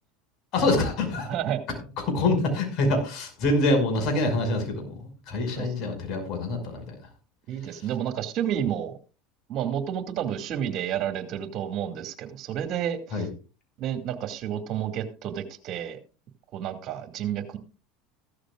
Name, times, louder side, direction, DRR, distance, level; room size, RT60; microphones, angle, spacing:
voice 1, 0.5-1.3 2.1-7.0 13.1-13.3, left 2 dB, 55° left, 5 dB, 5.6 m, -25 dB
voice 2, 1.3-1.6 5.6-5.7 7.5-8.9 9.5-13.3 13.8-16.0 16.5-17.6, right 9 dB, 50° right, 7 dB, 2.2 m, -30 dB
15.5 x 13.0 x 2.4 m, 0.34 s
supercardioid pair, 105°, 0 cm